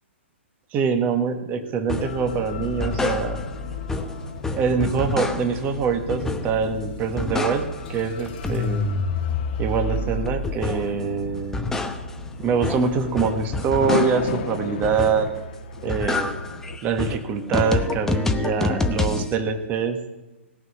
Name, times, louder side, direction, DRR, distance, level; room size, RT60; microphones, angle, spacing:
voice 1, 0.7-3.4 4.6-8.9 9.6-11.7 12.4-15.3 15.8-16.4 16.8-20.0, right 5 dB, 25° right, 6 dB, 1.6 m, -24 dB
sound 1, 1.9-2.2 2.6-3.6 3.9-5.7 6.1-6.7 7.0-8.0 8.3-11.0 11.4-14.4 14.8-15.4 15.7-19.3, left 3 dB, 5° left, 0.9 m, -27 dB
sound 2, 2.0-16.8, left 4 dB, 55° left, 1.6 m, -34 dB
18.0 x 6.3 x 9.9 m, 1.1 s
hypercardioid pair, 130°, 7 cm